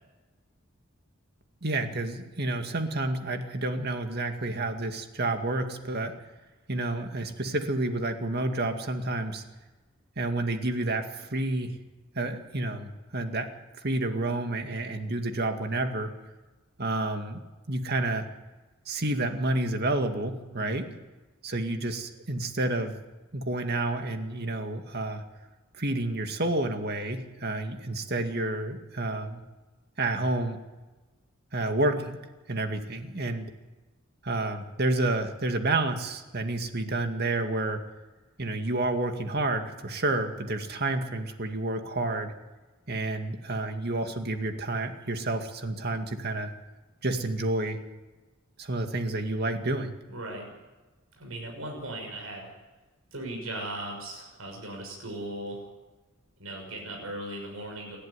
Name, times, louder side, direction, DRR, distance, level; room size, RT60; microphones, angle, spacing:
voice 1, 1.6-6.1 6.7-9.4 10.2-11.7 12.2-13.5 13.8-16.1 16.8-17.4 17.7-18.3 18.9-20.9 21.4-22.9 23.3-25.2 25.8-29.4 30.0-30.6 31.5-32.2 32.5-33.5 34.2-37.8 38.4-42.3 42.9-46.5 47.0-47.8 48.6-49.9, right 2 dB, 50° right, 6 dB, 2.2 m, -29 dB
voice 2, 20.5-20.9 50.1-50.5 51.2-52.5 53.1-55.7 56.4-58.0, right 1 dB, 85° right, 0 dB, 6.4 m, -38 dB
29.0 x 12.0 x 9.8 m, 1.2 s
head